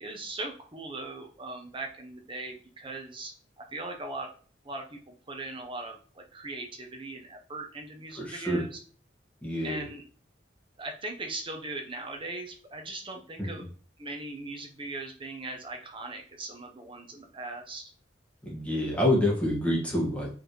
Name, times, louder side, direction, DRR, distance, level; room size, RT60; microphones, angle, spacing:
voice 1, 0.0-4.3 4.6-8.8 9.6-10.0 10.8-13.7 14.0-17.9, right 2 dB, 25° right, 3 dB, 1.1 m, -39 dB
voice 2, 8.1-8.6 9.4-9.9 13.4-13.6 18.4-20.3, left 1 dB, 5° left, -4 dB, 1.9 m, -27 dB
7.5 x 4.2 x 3.3 m, 0.42 s
head